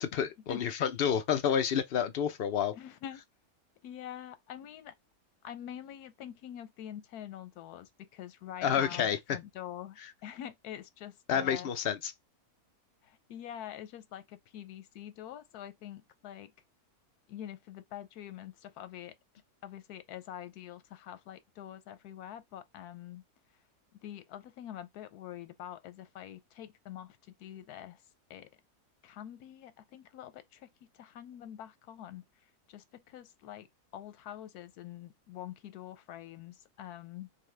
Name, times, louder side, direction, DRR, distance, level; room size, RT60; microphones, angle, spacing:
voice 1, 0.0-2.7 8.6-9.4 11.3-12.1, left 8 dB, 55° left, 0.6 m, -29 dB
voice 2, 2.7-3.2 3.8-4.9 5.4-11.7 13.0-16.5 17.3-19.1 19.6-23.2 24.0-28.0 28.3-28.5 29.0-32.2 32.7-33.7 33.9-37.3, left 11 dB, 90° left, 1.2 m, -45 dB
5.6 x 2.2 x 3.3 m
omnidirectional pair, 1.6 m